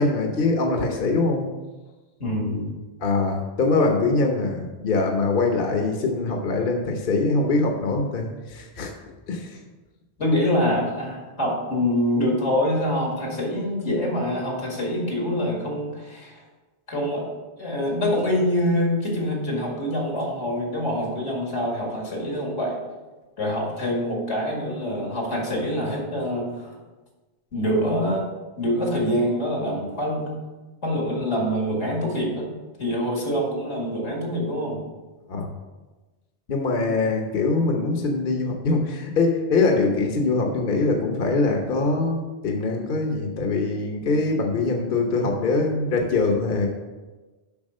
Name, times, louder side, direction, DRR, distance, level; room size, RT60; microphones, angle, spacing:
voice 1, 0.0-1.5 3.0-8.9 9.3-9.6 35.3-35.5 36.5-46.7, left 3 dB, 55° left, 2 dB, 1.0 m, -23 dB
voice 2, 2.2-2.8 10.2-16.4 16.9-17.3 17.6-22.8 23.4-26.8 27.5-28.3 28.6-30.3 30.8-32.5 32.8-34.8, equal, 85° left, -1 dB, 2.4 m, -25 dB
7.2 x 5.8 x 5.4 m, 1.2 s
omnidirectional pair, 1.1 m